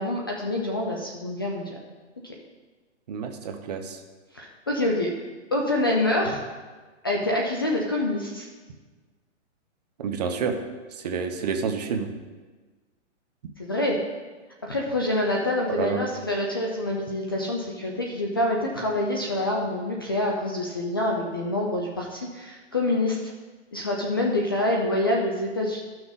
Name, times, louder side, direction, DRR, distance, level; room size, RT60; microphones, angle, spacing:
voice 1, 0.0-1.8 2.2-2.3 4.3-5.1 5.5-6.4 7.0-8.5 13.6-14.0 14.6-23.3 23.7-25.8, left 1 dB, 20° left, -1 dB, 0.4 m, -26 dB
voice 2, 3.1-4.0 10.0-10.6 11.0-12.1 15.7-16.0, right 6 dB, 35° right, 5 dB, 0.8 m, -29 dB
14.0 x 6.0 x 4.0 m, 1.3 s
hypercardioid pair, 165°, 36 cm